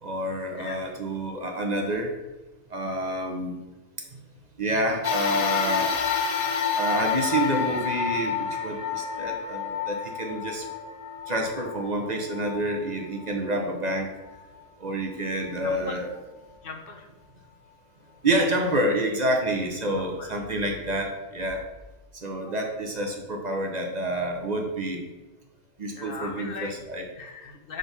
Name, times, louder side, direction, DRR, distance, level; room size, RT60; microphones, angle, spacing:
voice 1, 0.0-2.1 2.7-3.6 4.6-6.0 6.8-10.7 11.3-14.1 14.8-16.1 18.2-21.6 22.1-25.1 25.8-27.0, right 1 dB, 40° right, 2 dB, 0.7 m, -28 dB
voice 2, 0.5-0.9 15.6-16.0 16.6-17.1 19.9-20.3 25.9-26.8 27.2-27.8, left 4 dB, 50° left, 4 dB, 0.9 m, -38 dB
sound 1, 5.0-13.6 14.3-14.4 15.5-15.6, left 6 dB, 80° left, 0.3 m, -29 dB
6.5 x 3.8 x 4.0 m, 1.1 s
omnidirectional pair, 1.3 m